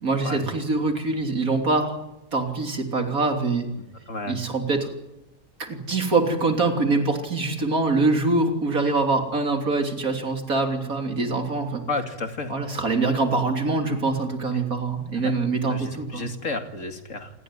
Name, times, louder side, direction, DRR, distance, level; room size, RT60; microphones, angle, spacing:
voice 1, 0.0-2.0 2.3-3.7 4.3-4.9 5.6-11.8 12.5-16.3, right 3 dB, 85° right, 4 dB, 3.8 m, -24 dB
voice 2, 4.1-4.4 11.9-12.5 15.1-15.3 15.7-17.3, left 3 dB, 65° left, 5 dB, 2.8 m, -31 dB
28.0 x 19.0 x 9.9 m, 0.93 s
omnidirectional pair, 1.5 m